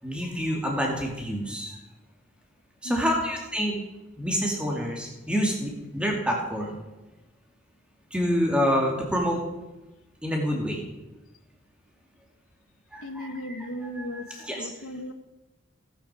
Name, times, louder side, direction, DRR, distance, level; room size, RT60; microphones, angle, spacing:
voice 1, 0.0-1.8 2.8-3.8 4.2-6.8 8.1-9.4 10.2-10.8 12.9-13.6 14.0-14.7, equal, 5° right, -1 dB, 2.3 m, -27 dB
voice 2, 2.8-3.2 13.0-15.1, equal, 90° left, 8 dB, 1.2 m, -36 dB
16.0 x 8.8 x 4.9 m, 1.1 s
head